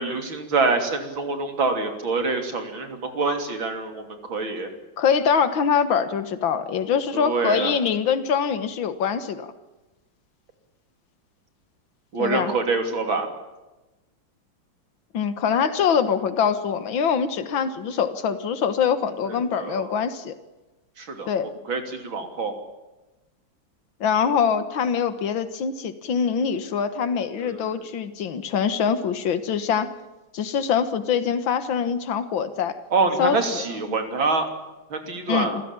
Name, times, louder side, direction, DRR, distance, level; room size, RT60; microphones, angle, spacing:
voice 1, 0.0-4.0 4.3-4.7 7.1-7.7 12.1-13.3 19.6-19.9 21.0-21.3 21.7-22.5 27.4-27.6 32.9-34.5 34.9-35.6, right 3 dB, 80° right, 5 dB, 3.8 m, -25 dB
voice 2, 5.0-9.5 12.2-12.5 15.1-20.3 21.3-21.5 24.0-29.9 30.3-32.7 33.2-34.0 35.3-35.6, left 7 dB, 80° left, 11 dB, 2.2 m, -24 dB
27.0 x 15.5 x 8.8 m, 1.1 s
omnidirectional pair, 2.1 m